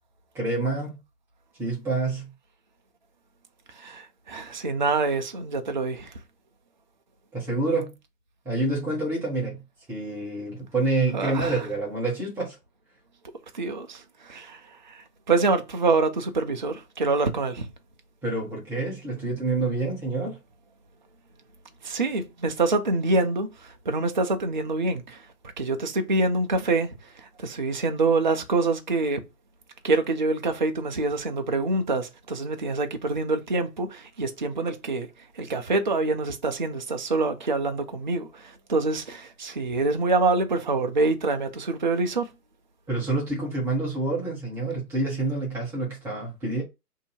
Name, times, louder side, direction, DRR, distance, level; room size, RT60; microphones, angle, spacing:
voice 1, 0.3-1.0 1.6-2.3 7.3-7.9 8.4-9.6 9.9-12.6 18.2-20.4 42.9-46.6, right 2 dB, 5° right, 0.7 m, -27 dB
voice 2, 3.8-6.1 11.1-11.6 13.5-17.7 21.8-25.2 25.6-29.2 29.8-35.1 35.4-42.3, right 3 dB, 35° right, 0.4 m, -26 dB
2.7 x 2.6 x 4.3 m
figure-of-eight pair, 130°, 46 cm